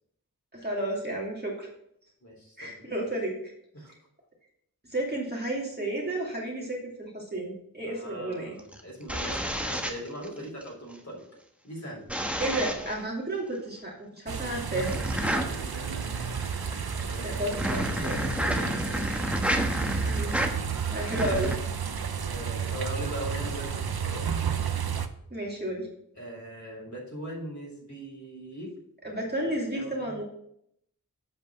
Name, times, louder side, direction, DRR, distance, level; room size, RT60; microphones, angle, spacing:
voice 1, 0.5-1.7 2.6-3.3 4.9-8.6 12.4-15.0 17.4-18.2 20.0-20.3 20.9-21.5 22.0-22.1 25.3-25.9 29.0-30.2, right 1 dB, 25° right, -3 dB, 2.6 m, -32 dB
voice 2, 2.2-2.9 3.7-3.9 7.8-11.2 11.6-12.0 15.2-16.1 17.0-17.9 18.2-19.0 22.2-24.4 26.2-28.7 29.7-30.2, right 1 dB, 50° left, -3 dB, 3.9 m, -40 dB
sound 1, 8.6-10.7 12.1-13.0 14.8-21.6, equal, 5° right, 1.2 m, -31 dB
sound 2, 14.3-25.1, right 6 dB, 75° right, 0.7 m, -32 dB
7.8 x 5.2 x 6.3 m, 0.74 s
wide cardioid pair, 50°, 37 cm